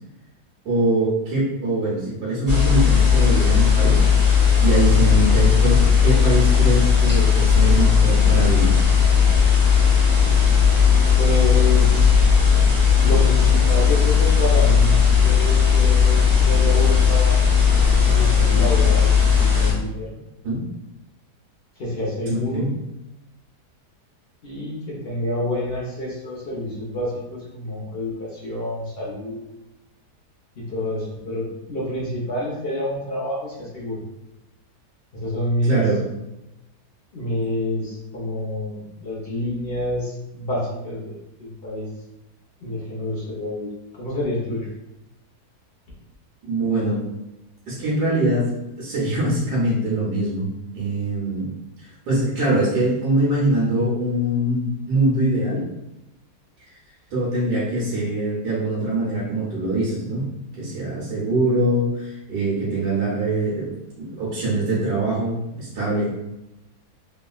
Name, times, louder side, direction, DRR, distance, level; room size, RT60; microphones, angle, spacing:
voice 1, 0.6-4.3 4.6-8.8 20.4-20.6 22.3-22.7 35.6-36.0 46.4-47.0 47.7-51.5 51.8-55.6 56.6-56.7 57.1-60.3 60.6-63.7 64.0-66.1, right 1 dB, 85° right, -7 dB, 1.4 m, -23 dB
sound 1, 2.5-19.7, left 6 dB, 40° right, 1.3 m, -16 dB
voice 2, 11.2-12.0 13.0-20.1 21.8-22.7 24.4-29.5 30.6-34.0 35.1-36.0 37.1-41.9 42.6-43.7 44.0-44.7, left 1 dB, 60° left, -5 dB, 0.6 m, -28 dB
3.2 x 2.4 x 2.2 m, 0.94 s
omnidirectional pair, 1.7 m